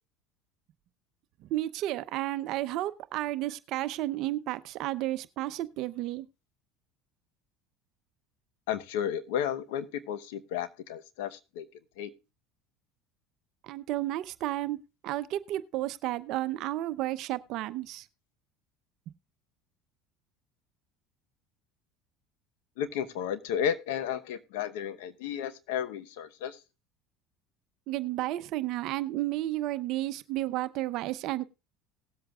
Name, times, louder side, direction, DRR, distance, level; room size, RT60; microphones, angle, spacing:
voice 1, 1.4-6.3 13.6-14.8 15.0-18.1 27.9-31.4, right 15 dB, 60° right, 0.7 m, -32 dB
voice 2, 8.7-11.7 12.0-12.1 22.8-26.6, left 9 dB, 80° left, 0.9 m, -33 dB
19.0 x 7.9 x 2.4 m
supercardioid pair, 95°, 0 cm